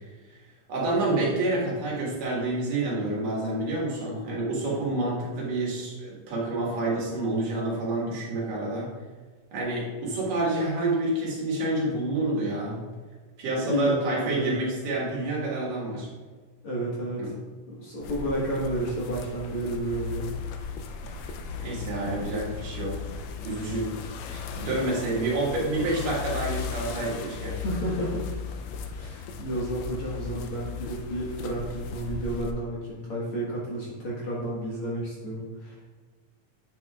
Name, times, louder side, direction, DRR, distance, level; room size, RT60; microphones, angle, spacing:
voice 1, 0.7-8.9 9.5-12.8 13.4-16.1 17.2-17.3 21.6-23.0 23.4-23.9 24.3-27.5, right 2 dB, 75° right, -5 dB, 3.4 m, -28 dB
voice 2, 13.6-13.9 14.2-14.5 16.6-17.3 17.7-20.3 27.5-28.3 28.9-35.8, right 1 dB, 50° left, -6 dB, 1.9 m, -31 dB
sound 1, 18.0-32.5, left 5 dB, 85° left, 1.5 m, -36 dB
8.6 x 7.5 x 2.4 m, 1.4 s
omnidirectional pair, 3.8 m